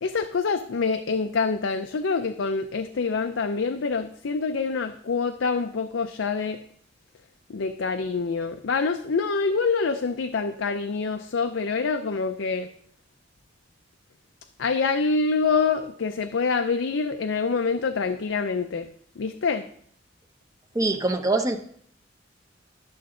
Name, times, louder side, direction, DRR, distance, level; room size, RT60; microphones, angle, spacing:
voice 1, 0.0-6.6 7.5-12.7 14.6-18.9 19.2-19.6, left 4 dB, 85° left, 7 dB, 0.5 m, -26 dB
voice 2, 20.7-21.6, right 2 dB, 20° right, 6 dB, 0.7 m, -23 dB
12.0 x 6.8 x 3.7 m, 0.63 s
head